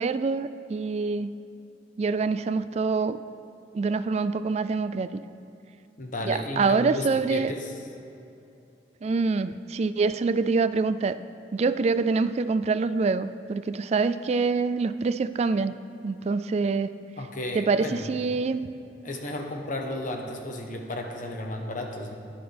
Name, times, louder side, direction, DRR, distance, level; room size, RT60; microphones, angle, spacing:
voice 1, 0.0-1.4 2.0-3.2 3.7-5.2 6.2-7.5 9.0-11.2 11.5-15.7 16.0-16.9 17.5-18.7, right 4 dB, 35° right, 13 dB, 0.3 m, -25 dB
voice 2, 6.0-7.7 17.2-18.0 19.0-22.2, left 1 dB, 45° left, 2 dB, 1.0 m, -33 dB
12.0 x 10.5 x 3.4 m, 2.7 s
head